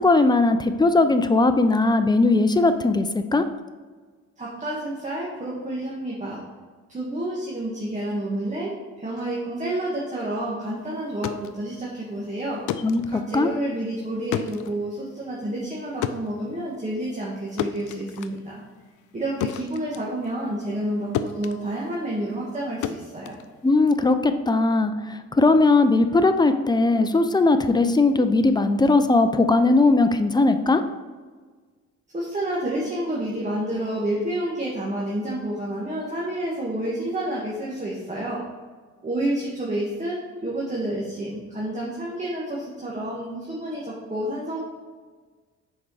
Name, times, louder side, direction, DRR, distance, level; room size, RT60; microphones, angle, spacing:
voice 1, 0.0-3.4 12.8-13.5 23.6-30.8, left 3 dB, 15° left, 9 dB, 0.6 m, -19 dB
voice 2, 4.4-6.4 6.9-12.6 13.1-18.6 19.1-23.3 32.1-38.4 39.0-44.6, right 1 dB, 25° right, -4 dB, 1.6 m, -29 dB
sound 1, 11.0-20.9 21.1-24.1, left 10 dB, 80° left, 0.5 m, -34 dB
6.4 x 4.9 x 4.8 m, 1.4 s
cardioid pair, 90°, 30 cm